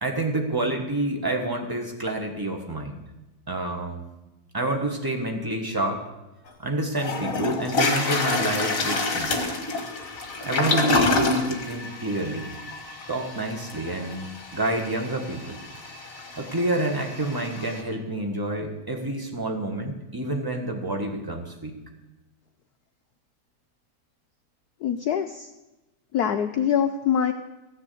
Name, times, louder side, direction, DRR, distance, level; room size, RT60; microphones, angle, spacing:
voice 1, 0.0-3.0 3.5-4.0 4.5-6.0 6.6-9.5 10.4-12.5 13.1-15.6 16.4-21.7, right 1 dB, 15° right, 3 dB, 1.0 m, -28 dB
Toilet flush, 6.5-6.6 7.0-17.8, left 2 dB, 40° left, 1.8 m, -28 dB
voice 2, 24.8-25.5 26.1-27.3, left 8 dB, 80° left, 6 dB, 0.8 m, -24 dB
15.0 x 7.1 x 8.4 m, 1.0 s
omnidirectional pair, 2.4 m